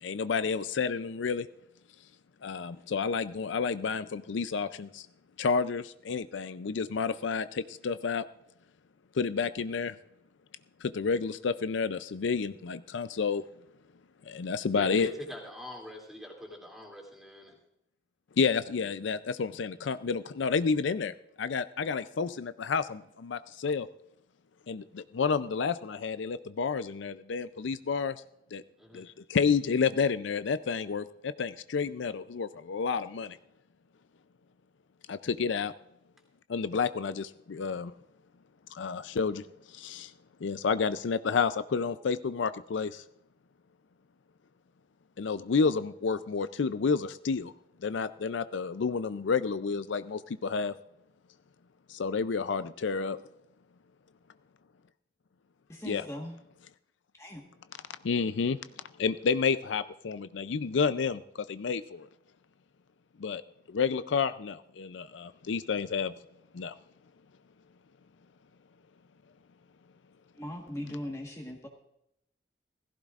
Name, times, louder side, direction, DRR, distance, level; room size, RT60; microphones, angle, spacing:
voice 1, 0.0-1.5 2.4-5.1 5.4-8.2 9.1-10.0 10.8-13.4 14.3-15.1 18.4-23.9 24.7-28.2 28.5-28.6 28.9-33.4 35.1-35.7 36.5-37.9 38.7-40.1 40.4-43.0 45.2-47.5 47.8-50.7 51.9-53.2 55.8-56.1 58.0-58.6 59.0-62.1 63.2-63.4 63.7-66.1 66.5-66.8, left 5 dB, 75° left, 13 dB, 0.4 m, -30 dB
voice 2, 14.7-17.5 28.8-29.1, left 1 dB, ahead, -1 dB, 2.7 m, -44 dB
voice 3, 55.7-56.4 57.2-57.4 70.4-71.7, left 1 dB, 15° left, 1 dB, 1.4 m, -39 dB
17.0 x 15.5 x 2.5 m, 0.80 s
head